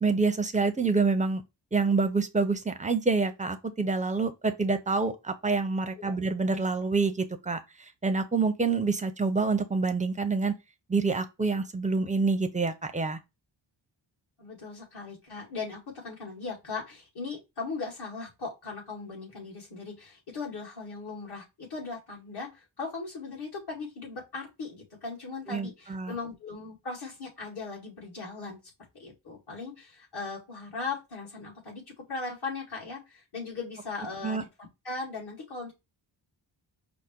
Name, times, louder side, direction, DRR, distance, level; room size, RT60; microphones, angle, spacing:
voice 1, 0.0-1.4 1.7-7.6 8.0-10.5 10.9-13.2 25.5-26.1 34.2-34.4, right 4 dB, 15° right, 0.5 m, -27 dB
voice 2, 14.4-28.6 28.9-31.8 32.1-34.5 34.8-35.7, left 4 dB, 55° left, 2.0 m, -38 dB
5.0 x 2.0 x 4.3 m
wide cardioid pair, 90°, 46 cm